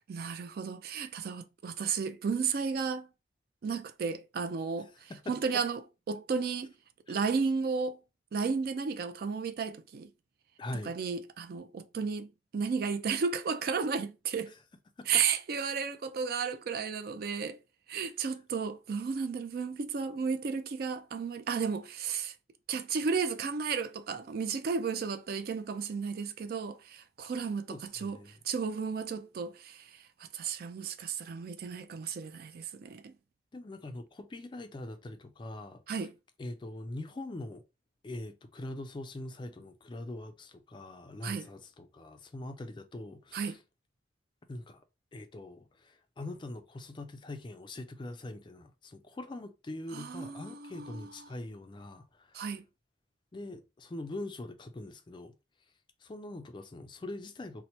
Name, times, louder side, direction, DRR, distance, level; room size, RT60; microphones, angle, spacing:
voice 1, 0.1-3.1 3.6-5.8 6.1-6.7 7.1-8.0 8.3-10.1 10.9-14.5 15.1-17.6 17.9-22.3 22.7-33.1 35.9-36.1 41.2-41.5 43.3-43.6 49.9-51.1 52.3-52.6, right 5 dB, 55° right, 0.3 m, -33 dB
voice 2, 5.1-5.6 7.1-7.2 10.6-11.0 14.5-14.6 15.0-15.2 27.7-28.4 33.5-35.8 36.4-37.6 38.0-43.6 44.5-44.8 45.1-52.5 53.3-55.3 56.0-57.6, left 2 dB, 25° left, 0.3 m, -43 dB
2.9 x 2.0 x 4.1 m
head